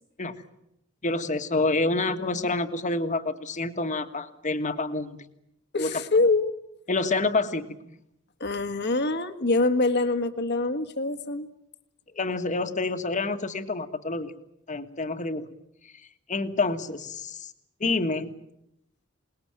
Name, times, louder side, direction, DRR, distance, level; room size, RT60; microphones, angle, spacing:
voice 1, 1.0-5.2 5.8-6.0 6.9-7.7 12.1-14.3 14.7-15.5 16.3-17.5 17.8-18.3, left 3 dB, 40° left, 7 dB, 1.7 m, -28 dB
voice 2, 5.7-6.5 8.4-11.5, left 3 dB, 55° left, 9 dB, 1.8 m, -24 dB
27.5 x 20.0 x 9.0 m, 0.81 s
head